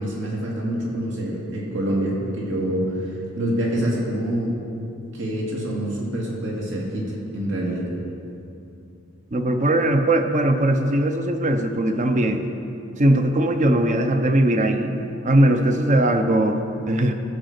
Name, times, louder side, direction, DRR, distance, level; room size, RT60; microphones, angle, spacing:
voice 1, 0.0-4.6 5.1-7.9, right 1 dB, 60° right, -3 dB, 2.4 m, -26 dB
voice 2, 9.3-12.5 13.0-16.6 16.9-17.1, right 1 dB, 35° right, 7 dB, 0.7 m, -20 dB
14.5 x 5.0 x 6.7 m, 2.7 s
head